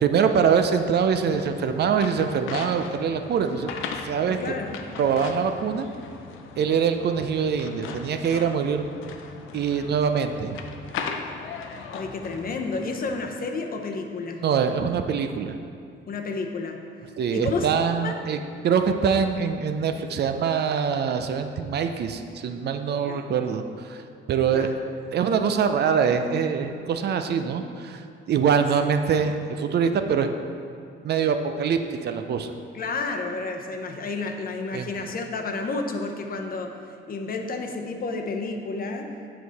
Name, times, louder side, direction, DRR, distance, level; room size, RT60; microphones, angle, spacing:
voice 1, 0.0-3.7 4.0-4.4 5.0-5.9 6.6-8.9 9.5-10.6 14.4-15.6 17.2-18.4 18.6-24.0 24.3-24.7 25.1-28.0 28.3-30.3 31.0-32.5 34.7-34.9, right 6 dB, 55° right, 7 dB, 0.5 m, -24 dB
sound 1, 1.1-13.2, left 5 dB, 85° left, 0.5 m, -38 dB
voice 2, 4.3-4.8 8.4-8.7 11.9-14.4 16.1-16.8 17.3-17.7 18.0-18.1 23.1-23.2 24.5-24.7 32.7-36.7 37.1-39.1, left 3 dB, 45° left, 3 dB, 0.8 m, -31 dB
7.7 x 4.8 x 4.0 m, 2.3 s
cardioid pair, 90°, 20 cm